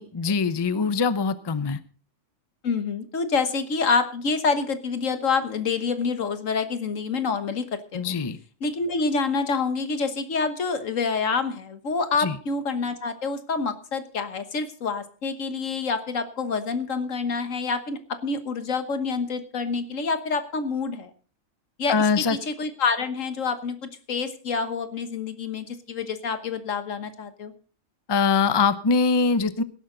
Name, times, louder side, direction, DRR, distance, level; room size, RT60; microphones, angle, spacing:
voice 1, 0.0-1.8 7.9-8.4 12.2-12.3 21.9-22.4 28.1-29.6, left 5 dB, 25° left, 14 dB, 0.6 m, -23 dB
voice 2, 2.6-7.7 7.9-8.1 8.6-21.1 21.8-27.5, left 4 dB, 75° left, 10 dB, 1.7 m, -27 dB
18.0 x 11.0 x 3.9 m, 0.42 s
omnidirectional pair, 1.3 m